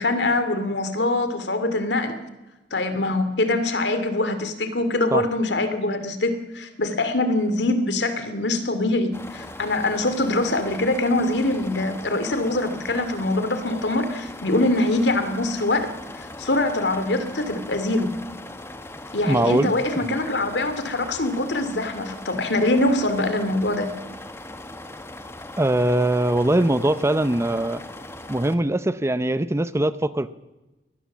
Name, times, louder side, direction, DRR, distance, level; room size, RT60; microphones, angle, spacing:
voice 1, 0.0-2.1 2.7-15.9 16.1-18.1 19.1-23.9, left 2 dB, 75° left, 10 dB, 2.5 m, -23 dB
sound 1, 9.1-28.6, left 2 dB, 15° left, 1.5 m, -39 dB
voice 2, 19.3-19.7 20.1-20.2 25.6-27.8 28.3-30.3, right 1 dB, 15° right, 14 dB, 0.6 m, -21 dB
23.5 x 18.5 x 7.4 m, 1.1 s
head